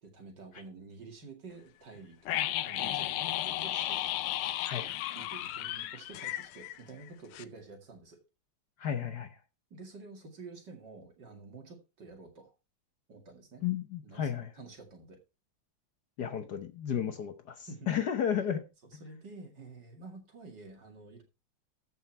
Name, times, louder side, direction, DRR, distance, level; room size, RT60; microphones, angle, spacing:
voice 1, 0.0-4.0 4.8-4.9 5.1-8.2 9.7-12.5 13.1-13.6 14.0-14.3 14.6-15.2 17.7-17.9 19.0-21.2, right 3 dB, 55° right, 2.9 m, -49 dB
sound 1, 2.3-7.1 7.3-7.4, left 13 dB, 85° left, 1.6 m, -34 dB
voice 2, 4.6-5.0 8.8-9.3 13.6-14.5 16.2-18.6, left 8 dB, 60° left, 1.4 m, -33 dB
14.0 x 5.6 x 4.4 m
omnidirectional pair, 2.3 m